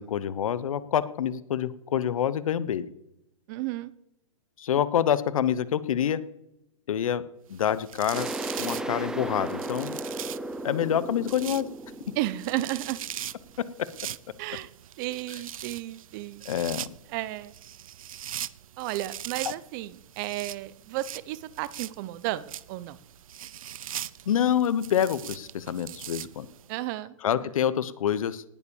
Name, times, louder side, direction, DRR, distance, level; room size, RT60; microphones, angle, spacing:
voice 1, 0.0-2.9 4.6-6.2 6.9-7.2 7.5-8.3 8.6-10.0 10.6-11.7 16.5-16.8 24.3-26.5 27.2-28.4, left 9 dB, 70° left, 16 dB, 1.0 m, -26 dB
voice 2, 3.5-3.9 12.1-13.0 14.4-14.7 15.0-16.4 17.1-17.5 18.8-23.0 26.7-27.5, right 16 dB, 35° right, 18 dB, 0.8 m, -33 dB
sound 1, 7.5-26.7, right 11 dB, 75° right, 0.6 m, -41 dB
sound 2, 8.1-13.6, right 2 dB, 5° right, 0.6 m, -36 dB
18.5 x 7.1 x 7.1 m, 0.85 s
hypercardioid pair, 150°, 18 cm